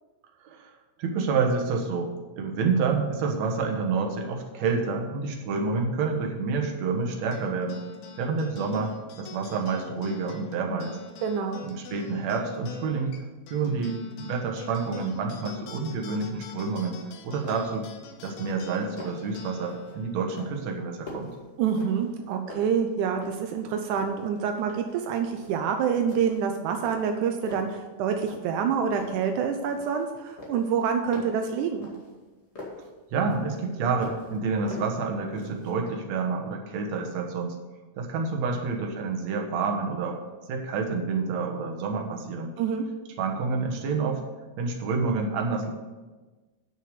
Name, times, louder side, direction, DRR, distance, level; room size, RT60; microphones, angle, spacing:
voice 1, 1.0-7.8 8.2-11.0 11.6-13.2 13.5-17.9 18.2-21.3 33.1-37.6 37.9-40.2 40.5-42.5 43.2-44.2 44.6-45.7, right 4 dB, 60° right, 2 dB, 2.0 m, -28 dB
sound 1, 7.3-22.1, left 5 dB, 80° left, 2.8 m, -46 dB
voice 2, 11.2-11.6 21.6-31.9 42.6-42.8, right 7 dB, 85° right, 5 dB, 1.7 m, -27 dB
sound 2, 17.0-17.1 17.4-17.8 18.1-18.5 18.8-19.3 19.7-20.0 20.4-22.2 22.5-23.6 23.9-25.0 25.4-25.7 26.1-26.5 26.8-27.8 28.3-28.7 29.0-30.1 30.4-32.9 33.3-34.4 34.7-35.7, left 2 dB, 25° left, 1.4 m, -44 dB
9.2 x 6.4 x 6.7 m, 1.2 s
omnidirectional pair, 4.3 m